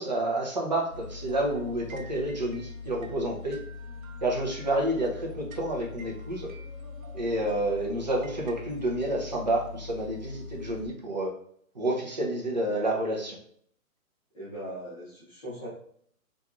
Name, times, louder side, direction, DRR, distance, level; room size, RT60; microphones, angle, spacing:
voice 1, 0.0-3.6 4.2-6.5 7.1-11.3 11.7-13.4, right 1 dB, 35° right, -2 dB, 0.4 m, -29 dB
sound 1, 0.9-10.9, left 4 dB, 70° right, 0.6 m, -42 dB
voice 2, 14.3-15.7, equal, 25° left, -8 dB, 0.8 m, -39 dB
2.8 x 2.3 x 2.3 m, 0.63 s
hypercardioid pair, 155°, 43 cm